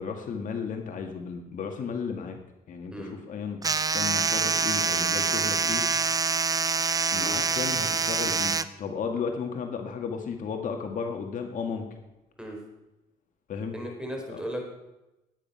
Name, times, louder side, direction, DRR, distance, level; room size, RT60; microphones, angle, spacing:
voice 1, 0.0-2.4 2.7-3.6 3.9-5.8 7.1-11.9 13.5-13.8 14.3-14.4, left 6 dB, 50° left, 4 dB, 1.8 m, -34 dB
sound 1, 3.6-8.6, right 4 dB, 20° right, 0.6 m, -25 dB
voice 2, 13.7-14.7, equal, 5° right, 1 dB, 4.3 m, -36 dB
18.0 x 9.5 x 5.6 m, 0.98 s
cardioid pair, 110°, 17 cm